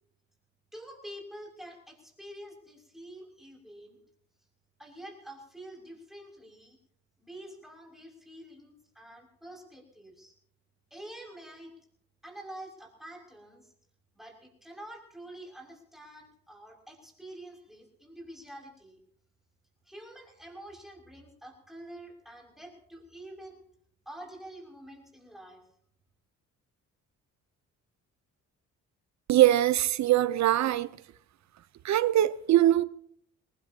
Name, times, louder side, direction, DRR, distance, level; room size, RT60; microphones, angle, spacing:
voice 1, 0.7-4.0 4.8-6.8 7.2-10.3 10.9-11.7 12.2-13.7 14.1-19.0 19.8-23.6 24.1-25.6, right 1 dB, ahead, 6.1 m, -47 dB
voice 2, 29.3-30.9 31.8-32.8, right 13 dB, 65° right, 0.8 m, -22 dB
23.5 x 19.5 x 2.9 m
cardioid pair, 90°, 30 cm